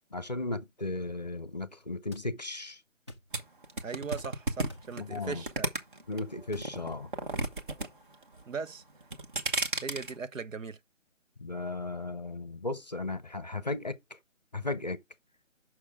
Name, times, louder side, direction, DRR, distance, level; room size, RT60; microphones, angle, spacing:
voice 1, 0.1-2.8 5.0-5.4 6.1-7.1 11.4-14.0 14.5-15.0, left 2 dB, 35° left, 0.6 m, -35 dB
sound 1, 2.1-2.3 3.1-3.3 4.2-4.3 4.7-4.9 6.5-6.7, left 1 dB, 20° right, 0.6 m, -47 dB
sound 2, 3.3-6.2 6.6-7.9 8.1-8.6 9.0-10.1, right 2 dB, 40° right, 1.2 m, -32 dB
voice 2, 3.8-5.7 8.5-8.8 9.8-10.8, right 5 dB, 80° right, 0.9 m, -38 dB
6.4 x 6.0 x 3.5 m
figure-of-eight pair, 170°, 39 cm